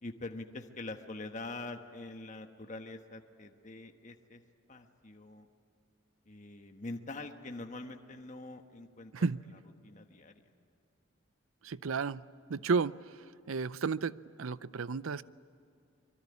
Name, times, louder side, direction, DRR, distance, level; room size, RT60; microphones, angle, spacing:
voice 1, 0.0-4.4 4.7-5.5 6.3-9.3 9.8-10.4, left 2 dB, 35° left, 6 dB, 1.3 m, -44 dB
voice 2, 11.6-12.2 12.5-12.9 13.5-15.2, right 4 dB, 80° right, 17 dB, 0.6 m, -32 dB
24.5 x 23.0 x 9.7 m, 2.5 s
head